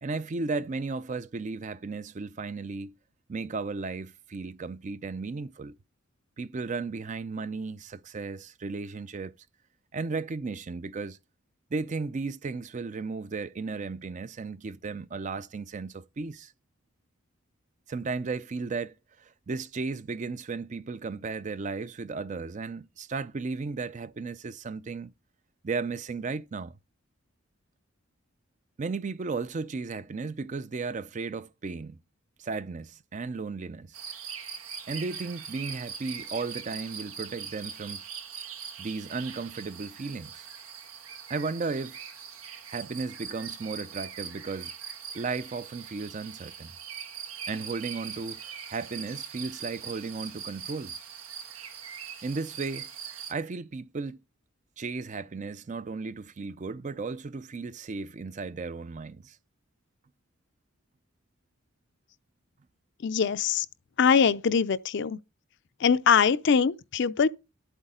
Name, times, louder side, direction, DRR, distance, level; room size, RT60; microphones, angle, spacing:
voice 1, 0.0-2.9 3.3-5.8 6.4-9.3 9.9-11.2 11.7-16.5 17.9-25.1 25.6-26.7 28.8-32.0 32.4-34.0 34.9-38.0 38.8-40.5 41.3-42.0 42.7-44.7 45.1-46.7 47.5-48.4 48.7-51.0 52.2-52.9 53.3-54.2 54.8-59.4, right 4 dB, 35° right, 0.4 m, -35 dB
sound 1, 33.9-53.3, right 7 dB, 90° right, 1.3 m, -41 dB
voice 2, 63.0-63.7 64.0-65.2 65.8-67.3, left 6 dB, 55° left, 0.5 m, -23 dB
11.0 x 8.1 x 3.7 m
head